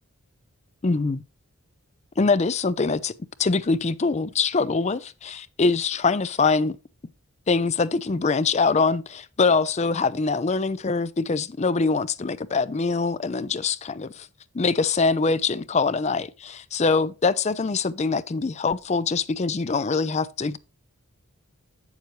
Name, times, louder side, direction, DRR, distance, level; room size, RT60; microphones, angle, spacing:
voice 1, 0.8-1.2 2.2-3.1 3.4-6.8 7.5-14.3 14.5-20.6, left 4 dB, 30° left, 0.4 m, -23 dB
9.1 x 7.2 x 3.1 m
head